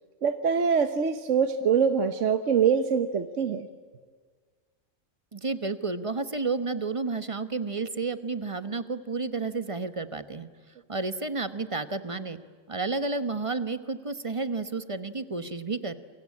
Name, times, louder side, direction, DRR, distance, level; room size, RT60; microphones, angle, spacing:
voice 1, 0.2-3.7, right 6 dB, 65° right, 9 dB, 1.3 m, -24 dB
voice 2, 5.3-10.5 10.9-12.4 12.7-16.0, right 3 dB, 25° right, 11 dB, 1.1 m, -31 dB
29.0 x 23.5 x 8.6 m, 1.5 s
omnidirectional pair, 1.4 m